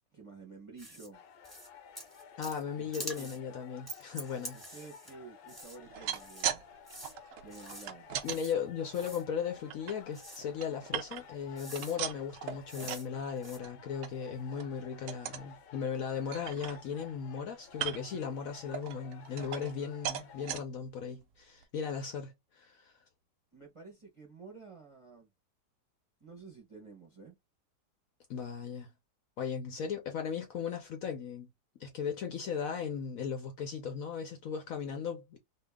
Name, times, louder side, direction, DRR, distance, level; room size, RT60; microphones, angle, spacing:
voice 1, 0.1-1.2 2.8-3.3 4.5-6.6 7.4-8.1 23.5-25.3 26.2-27.4, right 4 dB, 25° right, 0.8 m, -51 dB
sound 1, 0.8-1.1 1.4-1.7 1.9-2.6 2.9-3.4 3.9-5.1 5.5-5.8 6.1-6.5 6.9-7.1 7.5-7.9 8.2-8.5 8.9-9.2 10.1-10.4 11.1-11.2 11.6-12.0 12.7-13.1 13.4-13.6, right 1 dB, ahead, 1.3 m, -46 dB
sound 2, 1.1-20.4, left 7 dB, 90° left, 1.4 m, -55 dB
voice 2, 2.4-4.8 8.2-22.9 28.3-28.9 29.4-31.5 31.8-35.4, left 7 dB, 65° left, 1.0 m, -37 dB
sound 3, 5.8-6.6 6.9-8.4 8.9-9.9 10.4-11.4 11.7-13.1 13.4-13.7 14.0-14.1 14.5-14.7 15.1-15.5 15.9-16.0 16.3-17.1 17.7-18.2 18.7-19.8 20.0-20.6 21.2-21.3 21.6-21.7, right 10 dB, 75° right, 0.7 m, -38 dB
2.8 x 2.8 x 3.5 m
omnidirectional pair, 1.8 m